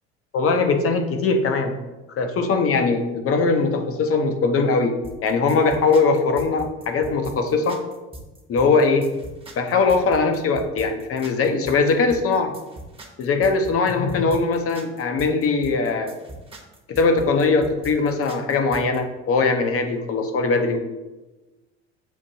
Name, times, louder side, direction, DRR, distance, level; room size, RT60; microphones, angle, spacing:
voice 1, 0.3-1.7 2.2-5.0 5.2-7.8 8.5-9.1 9.6-12.5 13.2-16.1 16.9-20.8, left 4 dB, 40° left, 6 dB, 0.7 m, -21 dB
sound 1, 5.0-19.0, right 1 dB, 15° right, 1.0 m, -41 dB
7.1 x 2.6 x 2.7 m, 1.1 s
hypercardioid pair, 75°, 35 cm